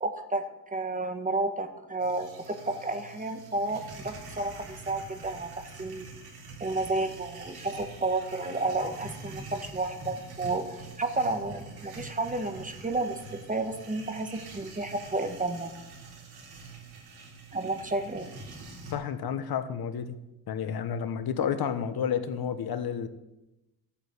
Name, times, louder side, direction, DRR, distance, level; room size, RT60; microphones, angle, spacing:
voice 1, 0.0-6.1 6.6-13.2 13.5-15.7 17.5-18.3, right 2 dB, 20° right, 7 dB, 1.3 m, -31 dB
sound 1, 2.0-18.9, right 3 dB, 75° right, 3.6 m, -45 dB
voice 2, 18.9-20.2 20.5-23.1, left 8 dB, 70° left, 11 dB, 1.1 m, -30 dB
14.0 x 8.7 x 8.0 m, 0.99 s
wide cardioid pair, 155°, 38 cm